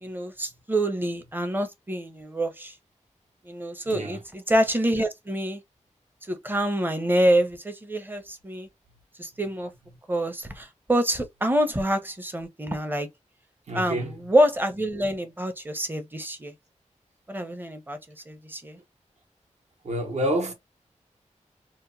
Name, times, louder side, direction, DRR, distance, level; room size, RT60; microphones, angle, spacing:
voice 1, 0.0-2.7 3.5-5.6 6.3-8.7 9.2-9.7 10.1-13.1 13.7-16.5 17.3-18.0 18.3-18.8, right 1 dB, 15° right, 0.6 m, -26 dB
voice 2, 3.9-4.2 13.7-14.1 19.8-20.5, equal, 60° right, 0.9 m, -28 dB
2.9 x 2.1 x 2.5 m
wide cardioid pair, 95°, 13 cm